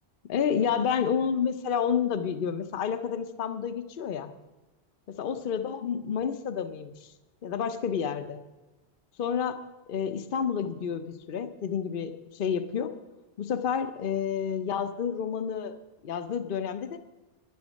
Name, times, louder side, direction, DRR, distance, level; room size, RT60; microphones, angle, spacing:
voice 1, 0.3-4.3 5.1-7.1 7.4-8.4 9.2-9.6 9.9-12.9 13.4-15.8 16.0-17.0, left 7 dB, 60° left, 9 dB, 0.8 m, -29 dB
10.5 x 10.5 x 6.3 m, 1.1 s
omnidirectional pair, 1.1 m